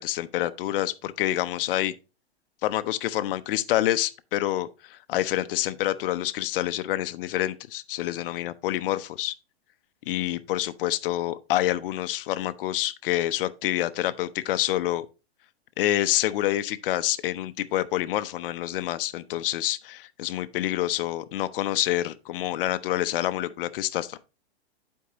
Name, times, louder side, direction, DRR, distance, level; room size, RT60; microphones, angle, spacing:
voice 1, 0.0-1.9 2.6-9.3 10.1-15.1 15.8-24.2, left 14 dB, 60° left, 0.7 m, -27 dB
11.0 x 4.6 x 2.9 m
hypercardioid pair, 130°, 32 cm